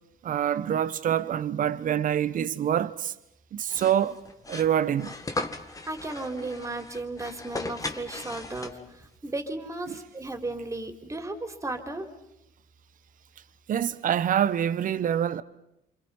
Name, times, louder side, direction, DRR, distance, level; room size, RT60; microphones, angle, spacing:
voice 1, 0.2-3.1 3.5-4.2 4.5-5.1 9.9-10.0 13.7-15.4, right 9 dB, 50° right, 1.2 m, -26 dB
sound 1, 3.7-9.0, left 2 dB, 20° left, 1.9 m, -37 dB
voice 2, 5.5-12.1, right 2 dB, 20° right, 3.8 m, -35 dB
28.5 x 26.5 x 5.6 m
cardioid pair, 110°, 17 cm